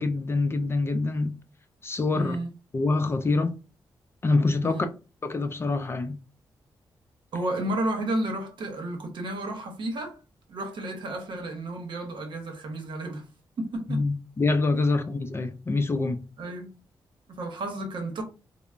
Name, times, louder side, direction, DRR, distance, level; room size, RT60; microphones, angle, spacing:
voice 1, 0.0-1.3 1.8-2.4 2.7-3.5 4.2-4.9 5.2-6.2 13.9-16.3, left 3 dB, 30° left, 0.4 m, -25 dB
voice 2, 2.1-2.5 4.6-4.9 7.3-10.2 10.5-13.3 13.6-14.1 16.4-16.7 17.3-18.2, right 1 dB, 65° right, 0.8 m, -32 dB
3.1 x 2.0 x 2.4 m
cardioid pair, 100°, 9 cm